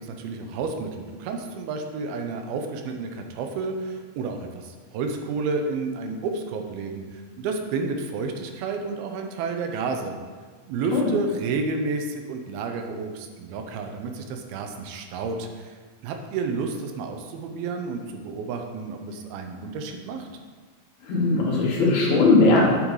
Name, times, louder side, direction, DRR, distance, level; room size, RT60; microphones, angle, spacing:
voice 1, 0.0-10.2 10.7-15.7 16.0-20.3, right 4 dB, 90° right, 4 dB, 2.6 m, -31 dB
voice 2, 21.0-22.6, left 3 dB, 55° left, -4 dB, 2.4 m, -19 dB
9.0 x 7.4 x 3.1 m, 1.5 s
omnidirectional pair, 4.2 m